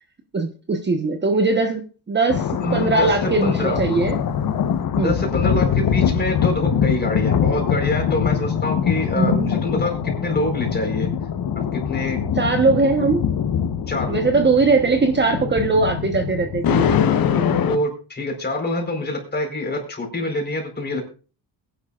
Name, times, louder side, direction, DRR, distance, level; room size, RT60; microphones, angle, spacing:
voice 1, 0.3-1.8 2.1-2.4 2.7-4.2 5.0-5.1 9.2-9.5 12.4-13.3 14.1-16.9 17.3-17.6, right 3 dB, 25° right, 5 dB, 1.2 m, -20 dB
sound 1, 2.3-17.8, left 8 dB, 55° left, 1.2 m, -23 dB
voice 2, 2.6-3.8 5.0-11.1 11.7-12.2 13.9-14.3 17.7-21.0, left 1 dB, 25° left, 2 dB, 4.5 m, -25 dB
21.5 x 10.5 x 2.5 m, 0.36 s
cardioid pair, 120°, 41 cm